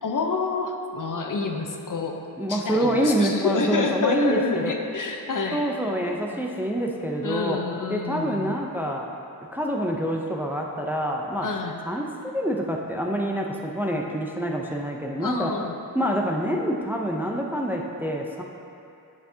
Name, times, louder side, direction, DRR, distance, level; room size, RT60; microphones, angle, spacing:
voice 1, 0.0-2.2 2.5-5.6 7.2-8.6 11.4-11.8 15.2-15.7, left 4 dB, 55° left, 2 dB, 0.7 m, -28 dB
voice 2, 2.4-4.7 5.5-7.6 7.9-9.1 9.5-11.5 11.8-15.5 15.9-18.4, right 1 dB, 5° right, 0 dB, 0.5 m, -26 dB
10.0 x 5.8 x 2.7 m, 2.7 s
wide cardioid pair, 100°, 38 cm